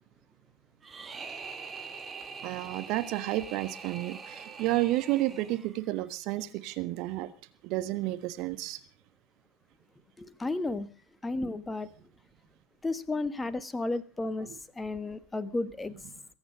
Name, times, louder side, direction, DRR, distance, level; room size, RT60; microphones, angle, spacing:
sound 1, 0.8-5.9, right 5 dB, 20° right, 2.0 m, -43 dB
voice 1, 2.4-7.3 7.6-8.8, right 17 dB, 45° right, 1.4 m, -31 dB
voice 2, 10.2-10.9 11.2-11.9 12.8-15.9, left 2 dB, 10° left, 1.4 m, -33 dB
22.0 x 9.7 x 6.4 m
figure-of-eight pair, 85°, 0 cm